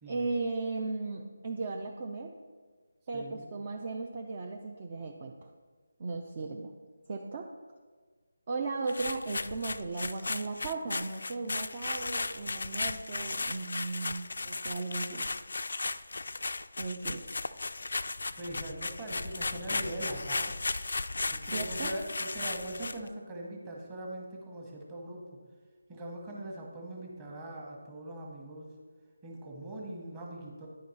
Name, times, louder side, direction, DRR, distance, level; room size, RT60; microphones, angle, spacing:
voice 1, 0.1-2.3 3.1-5.3 6.0-6.7 7.1-7.5 8.5-15.3 16.8-17.2 21.4-21.9, right 3 dB, 35° right, 2 dB, 0.5 m, -36 dB
voice 2, 3.1-3.5 18.4-20.5 21.3-25.2 25.9-28.7 29.2-30.7, right 1 dB, 15° right, -2 dB, 1.3 m, -41 dB
sound 1, 8.9-23.1, left 3 dB, 65° left, 0.3 m, -35 dB
9.5 x 5.1 x 4.2 m, 1.5 s
figure-of-eight pair, 160°, 0 cm